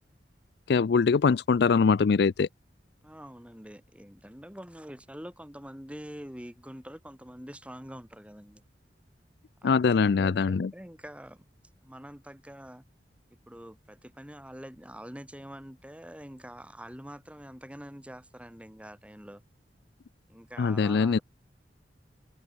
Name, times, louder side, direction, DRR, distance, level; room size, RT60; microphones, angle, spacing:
voice 1, 0.7-2.5 9.6-10.7 20.6-21.2, left 5 dB, 65° left, 0.4 m, -23 dB
voice 2, 3.0-8.6 9.6-11.4 11.8-12.9 13.5-19.4 20.3-21.2, equal, 5° right, 4.4 m, -45 dB
head